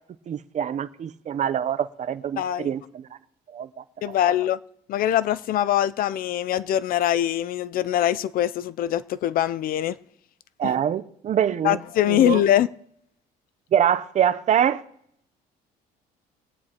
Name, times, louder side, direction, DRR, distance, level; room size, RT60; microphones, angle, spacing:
voice 1, 0.3-3.1 3.5-4.2 10.6-11.8 12.1-12.4 13.7-14.8, right 9 dB, 45° right, 0.6 m, -25 dB
voice 2, 2.4-2.7 4.0-4.6 4.9-10.0 10.6-10.7 11.6-12.7, left 12 dB, 60° left, 0.4 m, -23 dB
23.5 x 9.4 x 2.9 m
cardioid pair, 110°, 17 cm